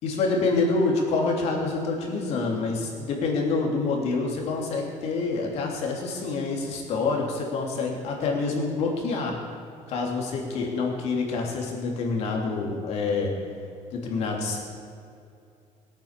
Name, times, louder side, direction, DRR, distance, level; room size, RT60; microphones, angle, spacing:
voice 1, 0.0-9.4 9.9-13.4 13.9-14.6, left 3 dB, 55° left, 0 dB, 3.1 m, -27 dB
20.5 x 9.0 x 7.5 m, 2.5 s
cardioid pair, 165°, 12 cm